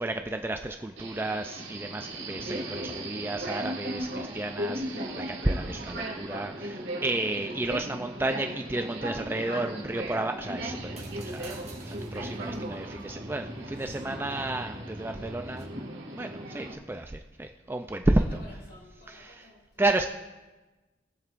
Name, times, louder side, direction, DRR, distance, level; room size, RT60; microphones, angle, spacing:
voice 1, 0.0-11.6 11.9-15.7 16.2-18.2 19.8-20.1, right 2 dB, 10° right, 5 dB, 0.3 m, -31 dB
Subway metro underground, 1.0-16.7, right 1 dB, 65° right, 1.9 m, -37 dB
sound 1, 10.6-15.6, right 1 dB, 35° right, 1.6 m, -44 dB
voice 2, 13.8-14.3 18.1-20.1, left 1 dB, 55° left, -5 dB, 3.6 m, -53 dB
22.0 x 7.5 x 2.5 m, 1.2 s
head